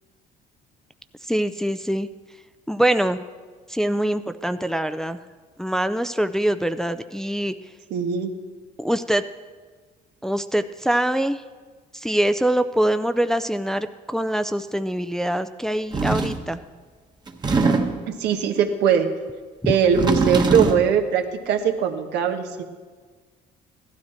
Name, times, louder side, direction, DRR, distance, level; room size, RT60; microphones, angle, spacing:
voice 1, 1.2-2.1 2.7-3.2 3.7-5.2 5.6-7.5 8.8-9.2 10.2-11.4 11.9-16.6 19.6-19.7, right 1 dB, 5° left, 10 dB, 0.4 m, -24 dB
voice 2, 7.9-8.3 18.1-19.1 19.7-22.6, right 7 dB, 80° right, 6 dB, 1.2 m, -21 dB
sound 1, 15.9-16.5 17.3-18.1 19.7-20.9, right 3 dB, 25° right, 1.1 m, -22 dB
16.0 x 12.5 x 4.4 m, 1.5 s
cardioid pair, 110°, 17 cm